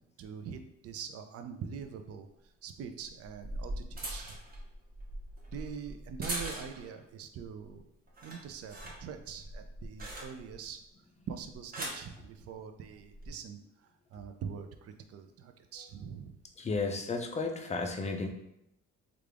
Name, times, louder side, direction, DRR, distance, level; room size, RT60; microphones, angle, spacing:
voice 1, 0.2-2.3 2.6-4.4 5.5-7.8 8.2-10.8 11.3-16.4, right 7 dB, 50° right, 7 dB, 0.4 m, -43 dB
sound 1, 1.8-1.9 3.0-7.0 7.4-7.8 8.1-10.6 11.4-12.1 13.0-13.3, right 1 dB, 30° right, 0.9 m, -41 dB
voice 2, 16.6-18.3, left 3 dB, 20° left, 4 dB, 0.5 m, -33 dB
3.4 x 2.5 x 3.3 m, 0.81 s
cardioid pair, 100°, 31 cm